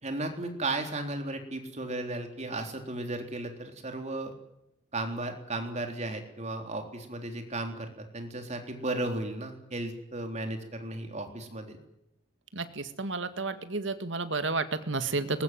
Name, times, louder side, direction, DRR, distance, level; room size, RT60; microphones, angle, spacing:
voice 1, 0.0-4.3 4.9-11.8, right 2 dB, 35° right, 5 dB, 3.6 m, -35 dB
voice 2, 12.5-15.4, right 3 dB, 80° right, 10 dB, 2.0 m, -31 dB
22.5 x 21.0 x 9.3 m, 0.80 s
head